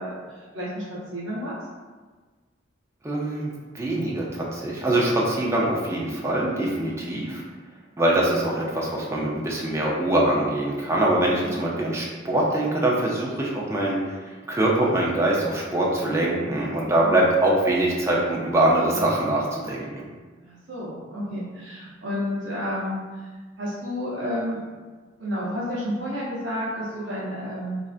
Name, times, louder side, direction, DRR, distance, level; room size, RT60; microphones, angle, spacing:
voice 1, 0.0-1.5 6.7-6.9 11.4-11.6 17.0-17.2 20.4-23.3 23.6-24.6 25.2-27.8, equal, 70° right, -8 dB, 0.8 m, -31 dB
voice 2, 3.0-7.4 8.0-20.0, right 1 dB, 15° right, -4 dB, 0.5 m, -23 dB
3.2 x 2.5 x 2.4 m, 1.4 s
head